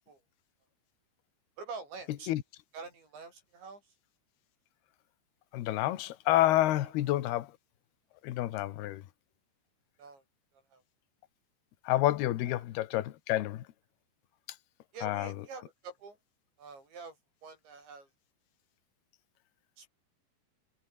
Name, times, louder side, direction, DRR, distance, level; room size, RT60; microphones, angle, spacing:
voice 1, 1.6-2.3 2.7-4.0 6.8-6.9 10.0-10.2 10.7-10.8 14.9-16.2 16.6-17.2 17.4-18.1 19.8-19.9, right 4 dB, 90° right, 10.5 m, -46 dB
voice 2, 5.5-7.5 8.2-9.0 11.8-13.7 15.0-15.3, left 15 dB, 70° left, 3.2 m, -29 dB
omnidirectional pair, 5.0 m